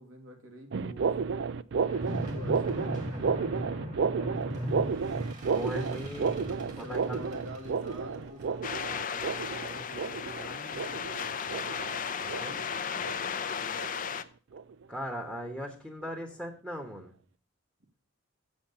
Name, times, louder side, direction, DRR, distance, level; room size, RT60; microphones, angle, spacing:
voice 1, 0.0-1.3 2.0-3.5 6.6-11.3 13.6-13.8, equal, 75° right, 3 dB, 2.2 m, -47 dB
sound 1, 0.7-13.5 13.8-14.1 14.5-14.8 15.3-15.5 16.0-16.1 16.8-16.9, right 5 dB, 55° right, 0.4 m, -32 dB
sound 2, 1.8-12.4, equal, 35° right, 1.9 m, -40 dB
voice 2, 5.5-6.4 6.8-7.2 12.1-12.6 14.9-17.1, equal, 5° right, 1 dB, 1.1 m, -38 dB
sound 3, 8.6-14.2, left 7 dB, 40° left, 0.5 m, -35 dB
7.3 x 7.1 x 6.7 m, 0.42 s
head